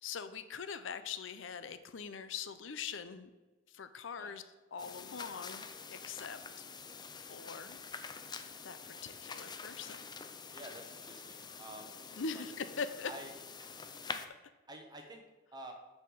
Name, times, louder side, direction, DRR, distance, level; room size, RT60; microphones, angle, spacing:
voice 1, 0.0-3.3 3.7-4.4 4.7-6.4 7.3-7.8 8.6-10.1 12.2-13.1, left 6 dB, 75° left, 12 dB, 0.6 m, -42 dB
sound 1, 4.8-14.3, left 5 dB, 20° left, 0.5 m, -46 dB
voice 2, 10.5-12.0 12.3-12.4 13.0-13.3 13.6-13.8 14.7-15.2 15.5-15.7, right 1 dB, 20° right, 2 dB, 1.4 m, -49 dB
6.7 x 5.7 x 6.5 m, 1.2 s
head